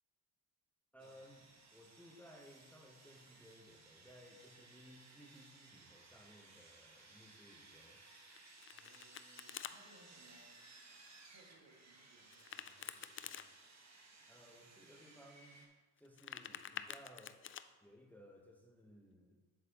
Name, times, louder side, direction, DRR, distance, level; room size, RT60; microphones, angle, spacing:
voice 1, 0.9-8.0 14.3-15.6 16.0-17.4 17.8-19.4, equal, 5° left, 1 dB, 1.1 m, -60 dB
Sawing, 1.0-15.7, right 3 dB, 40° right, 1.5 m, -61 dB
Domestic sounds home sounds, 8.3-9.7 12.3-13.5 16.0-17.6, left 9 dB, 30° left, 0.4 m, -48 dB
voice 2, 8.7-10.6 11.3-13.5, right 2 dB, 55° right, -1 dB, 2.1 m, -67 dB
7.7 x 7.5 x 3.0 m, 1.3 s
supercardioid pair, 65°, 42 cm